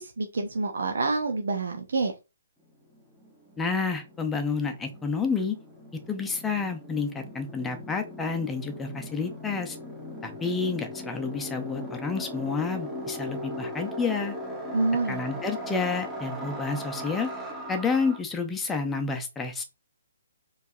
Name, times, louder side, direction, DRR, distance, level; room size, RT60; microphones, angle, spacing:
voice 1, 0.0-2.1 14.7-15.3, right 3 dB, 65° right, 4 dB, 0.7 m, -27 dB
sound 1, 2.7-2.8 2.9-18.2, equal, 5° right, 1.2 m, -39 dB
voice 2, 3.6-5.6 6.1-9.8 10.2-14.3 15.1-17.3 17.7-19.6, left 4 dB, 10° left, 5 dB, 0.7 m, -29 dB
4.4 x 3.2 x 2.7 m, 0.26 s
figure-of-eight pair, 135°, 0 cm